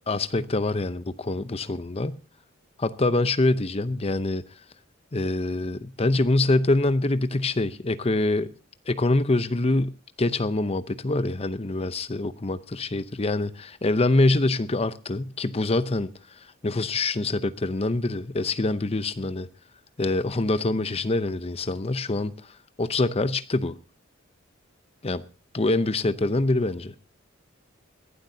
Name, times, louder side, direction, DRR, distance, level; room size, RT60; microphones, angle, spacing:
voice 1, 0.1-2.2 2.8-4.4 5.1-8.5 8.9-16.1 16.6-19.5 20.0-22.3 22.8-23.8 25.0-25.2 25.5-26.9, left 2 dB, 30° left, 0.7 m, -25 dB
21.5 x 11.5 x 2.7 m
head